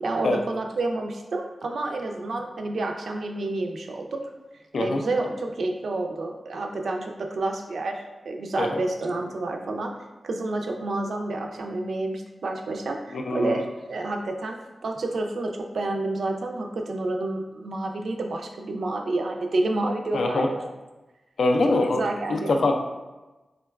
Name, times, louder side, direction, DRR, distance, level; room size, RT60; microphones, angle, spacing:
voice 1, 0.0-4.2 4.8-8.0 8.3-9.9 10.2-20.7 21.9-22.5, right 2 dB, 80° right, 3 dB, 0.3 m, -29 dB
voice 2, 13.1-13.6 20.1-20.5 21.4-22.0 22.3-22.8, left 2 dB, 85° left, 3 dB, 0.3 m, -23 dB
3.7 x 2.2 x 2.3 m, 1.1 s
wide cardioid pair, 145°, 0 cm